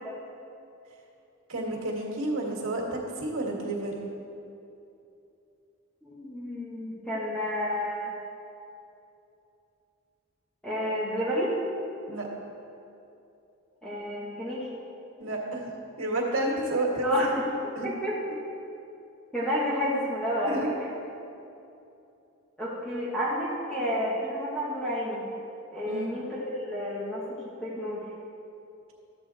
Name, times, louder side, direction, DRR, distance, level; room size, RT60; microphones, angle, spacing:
voice 1, 1.5-4.0 12.1-12.3 15.2-15.6 16.0-17.0 17.7-17.9 20.5-20.7 25.9-26.2, right 1 dB, 75° right, -2 dB, 1.9 m, -30 dB
voice 2, 6.0-8.1 10.6-11.5 13.8-14.6 17.0-17.3 17.8-18.1 19.3-20.7 22.6-25.3 25.7-28.0, equal, 5° left, -9 dB, 1.4 m, -30 dB
13.5 x 8.3 x 3.5 m, 2.7 s
head